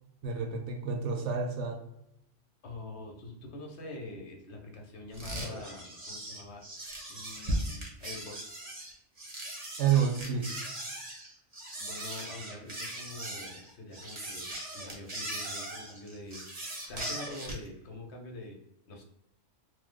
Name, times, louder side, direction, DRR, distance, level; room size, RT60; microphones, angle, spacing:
voice 1, 0.2-1.8 9.8-10.5, right 7 dB, 70° right, 3 dB, 0.9 m, -29 dB
voice 2, 2.6-6.6 7.1-8.6 11.8-18.6 18.9-19.0, left 2 dB, 65° left, 1 dB, 0.9 m, -45 dB
sound 1, 5.1-17.7, right 1 dB, 35° right, 0.8 m, -39 dB
3.1 x 2.0 x 3.6 m, 0.85 s
omnidirectional pair, 1.3 m